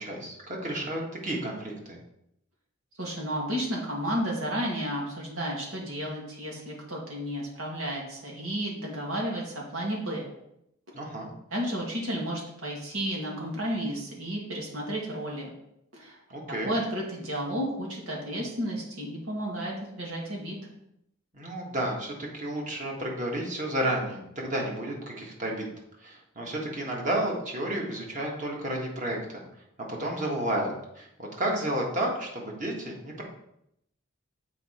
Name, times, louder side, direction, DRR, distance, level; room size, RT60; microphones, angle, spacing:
voice 1, 0.0-2.0 10.9-11.3 16.3-16.7 21.3-25.7 26.0-29.4 29.9-33.2, right 1 dB, 35° right, -1 dB, 1.6 m, -31 dB
voice 2, 3.0-10.3 11.5-15.5 15.9-16.2 16.6-20.6, equal, 85° right, -3 dB, 2.4 m, -32 dB
7.3 x 4.8 x 4.3 m, 0.78 s
head